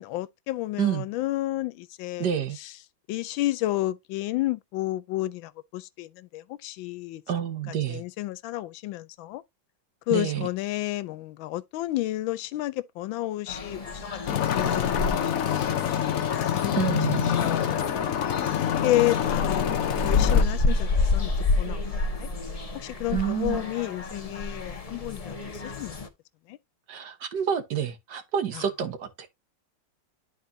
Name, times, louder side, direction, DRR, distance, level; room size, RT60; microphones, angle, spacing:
voice 1, 0.0-2.3 2.6-2.7 3.1-7.2 7.7-9.4 10.1-14.2 14.5-15.3 15.7-16.0 16.5-17.0 17.3-18.4 18.6-21.8 22.2-22.3 22.7-26.1 26.5-26.6 28.5-28.6, left 16 dB, 90° left, 1.4 m, -31 dB
voice 2, 2.2-2.6 7.3-8.0 10.1-10.5 16.7-17.3 23.1-23.6 26.9-29.3, right 9 dB, 65° right, 1.7 m, -28 dB
sound 1, 13.5-26.1, left 3 dB, 30° left, 0.7 m, -29 dB
sound 2, 14.3-20.4, left 9 dB, 60° left, 1.0 m, -26 dB
12.0 x 4.3 x 2.7 m
omnidirectional pair, 2.1 m